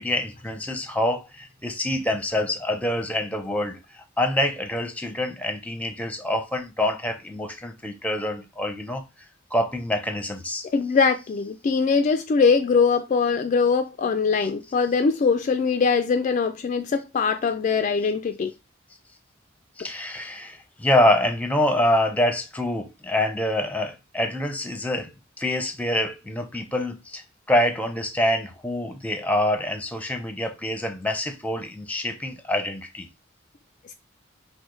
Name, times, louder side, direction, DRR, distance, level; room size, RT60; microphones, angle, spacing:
voice 1, 0.0-9.0 9.5-10.7 19.8-25.1 25.4-27.2 27.5-33.1, left 1 dB, 5° left, 0.6 m, -26 dB
voice 2, 10.7-18.5, left 5 dB, 40° left, 0.3 m, -22 dB
4.8 x 2.1 x 3.8 m
head